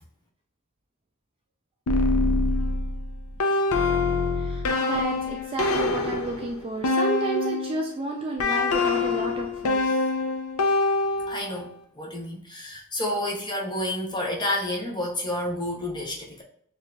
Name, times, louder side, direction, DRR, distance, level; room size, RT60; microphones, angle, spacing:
sound 1, 1.9-7.8 8.4-11.6, left 3 dB, 80° left, 0.5 m, -25 dB
voice 1, 4.3-10.0, right 2 dB, 25° right, 1 dB, 0.4 m, -31 dB
voice 2, 11.3-16.4, left 1 dB, 20° left, -1 dB, 0.6 m, -30 dB
6.3 x 2.4 x 2.3 m, 0.64 s
head